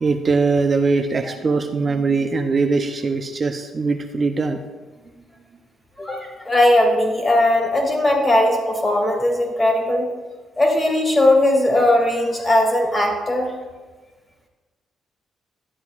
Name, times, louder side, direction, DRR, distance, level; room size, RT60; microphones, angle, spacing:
voice 1, 0.0-4.6, right 4 dB, 40° right, 4 dB, 0.6 m, -21 dB
voice 2, 6.0-10.1 10.6-13.5, left 1 dB, 20° left, 0 dB, 2.3 m, -18 dB
12.0 x 8.1 x 2.4 m, 1.3 s
cardioid pair, 90°, 0 cm